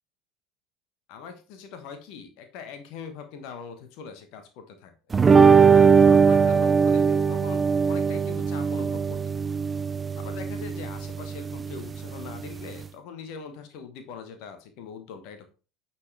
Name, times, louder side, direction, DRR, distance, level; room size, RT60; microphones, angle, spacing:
voice 1, 1.1-4.9 5.7-9.4 10.2-15.5, left 6 dB, 55° left, 7 dB, 1.2 m, -42 dB
sound 1, 5.1-12.8, right 6 dB, 25° right, 0.3 m, -20 dB
9.8 x 4.4 x 3.3 m, 0.34 s
figure-of-eight pair, 70°, 0 cm